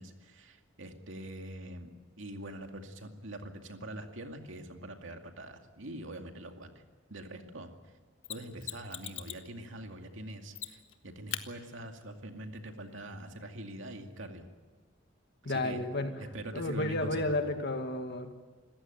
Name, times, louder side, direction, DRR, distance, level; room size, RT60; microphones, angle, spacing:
voice 1, 0.0-1.9 2.2-6.7 7.1-7.7 8.3-14.5 15.5-15.8 16.2-17.4, right 1 dB, 75° right, 4 dB, 2.3 m, -44 dB
Mechanisms, 8.2-9.5 10.5-10.9 11.3-11.5 14.2-14.3, left 11 dB, 75° left, 1.4 m, -40 dB
voice 2, 15.4-16.1 16.5-18.3, left 2 dB, 60° left, 6 dB, 2.1 m, -32 dB
27.0 x 15.0 x 9.3 m, 1.3 s
head